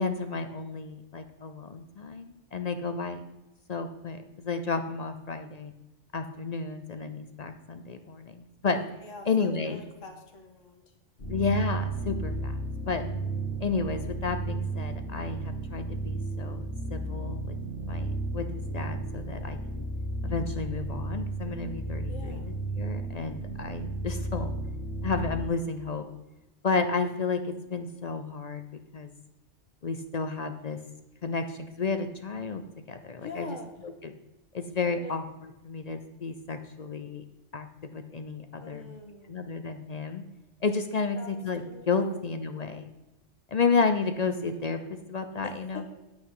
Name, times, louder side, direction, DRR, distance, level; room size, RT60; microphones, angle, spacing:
voice 1, 0.0-3.2 3.7-5.7 6.1-8.8 9.3-9.8 11.3-12.6 12.9-13.1 13.6-16.6 16.9-17.6 17.9-18.1 18.3-19.9 20.2-22.4 22.8-24.5 25.0-26.1 26.6-28.6 28.9-29.1 29.8-30.8 31.2-33.5 34.0-34.1 34.5-35.2 35.6-37.2 37.5-38.8 39.3-40.2 40.6-42.9 43.5-45.9, left 4 dB, 45° left, 8 dB, 0.6 m, -31 dB
voice 2, 8.8-10.9 22.1-22.5 33.2-33.7 34.9-35.1 38.6-39.4 41.2-41.3 41.6-42.2 45.4-45.9, left 4 dB, 90° left, 3 dB, 1.9 m, -44 dB
sound 1, 11.2-25.5, right 2 dB, 70° left, 2.7 m, -33 dB
9.8 x 8.7 x 3.8 m, 1.0 s
omnidirectional pair, 1.2 m